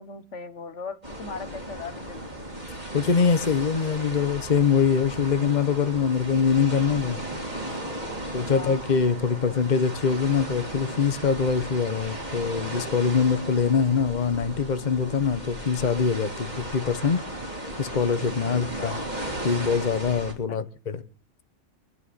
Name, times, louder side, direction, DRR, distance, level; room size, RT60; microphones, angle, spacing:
voice 1, 0.0-2.2 8.5-8.9 9.3-9.4 18.5-19.0 20.5-20.6, left 4 dB, 80° left, 1.7 m, -39 dB
sound 1, 1.0-20.3, right 1 dB, 35° right, 3.7 m, -36 dB
voice 2, 2.9-7.2 8.3-17.2 17.8-18.9 19.4-21.0, left 6 dB, 40° left, 1.2 m, -23 dB
24.5 x 11.0 x 4.2 m
omnidirectional pair, 1.2 m